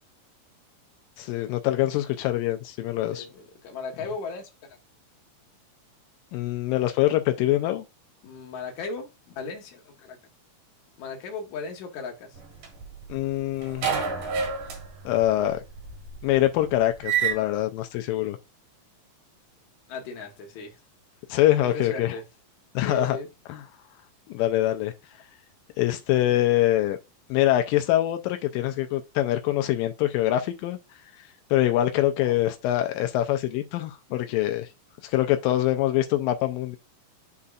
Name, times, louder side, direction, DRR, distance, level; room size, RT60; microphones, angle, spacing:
voice 1, 1.2-3.3 6.3-7.8 13.1-13.9 15.1-15.6 16.2-18.4 21.3-22.2 22.8-23.2 23.5-23.6 24.3-24.9 25.8-27.0 27.3-30.8 31.5-34.7 35.0-36.8, left 14 dB, 90° left, 2.4 m, -24 dB
voice 2, 2.9-4.8 8.2-10.2 11.0-12.4 19.9-20.8 21.6-22.2 22.8-23.3 32.2-32.4, left 4 dB, 65° left, 2.5 m, -37 dB
sound 1, 12.4-13.3 13.6-17.4, right 7 dB, 75° right, 3.2 m, -29 dB
9.5 x 4.1 x 2.4 m
omnidirectional pair, 3.9 m